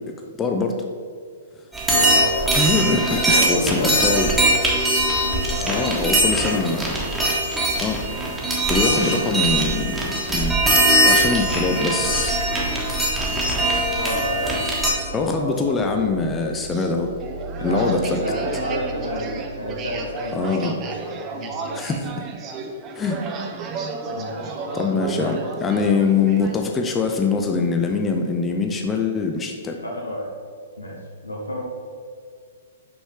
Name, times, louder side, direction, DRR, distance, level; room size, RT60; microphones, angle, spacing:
voice 1, 0.4-0.7 2.5-4.3 5.6-6.8 7.8-8.0 8.7-10.0 10.3-10.5 11.0-12.4 15.0-17.1 17.6-18.2 20.3-20.8 21.7-22.2 23.0-23.2 24.7-29.8, left 4 dB, 15° left, 3 dB, 0.5 m, -23 dB
sound 1, 1.7-14.9, right 1 dB, 5° right, 1.4 m, -21 dB
voice 2, 2.1-2.8 3.1-4.5 5.3-6.4 9.3-9.4 13.6-14.6 15.4-16.2 17.6-21.9 24.1-25.4 29.8-30.3 30.8-31.0 31.2-31.6, left 1 dB, 90° left, -2 dB, 1.1 m, -31 dB
sound 2, 10.4-21.2, right 2 dB, 80° right, 1.5 m, -37 dB
sound 3, 16.7-26.6, right 4 dB, 30° right, 0.7 m, -33 dB
6.0 x 5.4 x 3.3 m, 2.2 s
figure-of-eight pair, 115°, 0 cm